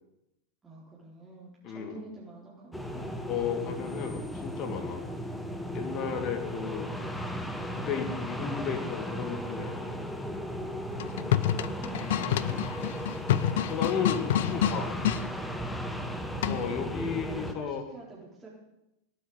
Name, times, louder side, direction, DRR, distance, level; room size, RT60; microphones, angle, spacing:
voice 1, 0.6-3.1 10.9-12.6 15.8-16.9 17.3-18.5, right 3 dB, 15° right, -6 dB, 4.1 m, -48 dB
voice 2, 1.6-2.0 3.3-5.0 5.7-6.9 7.7-10.0 13.7-14.9 16.5-17.8, left 7 dB, 35° left, 7 dB, 2.3 m, -33 dB
sound 1, 2.7-17.5, equal, 5° left, 1.6 m, -36 dB
sound 2, 10.9-15.2 16.4-16.8, left 11 dB, 55° left, 0.7 m, -28 dB
17.0 x 9.2 x 8.0 m, 0.89 s
figure-of-eight pair, 90°, 0 cm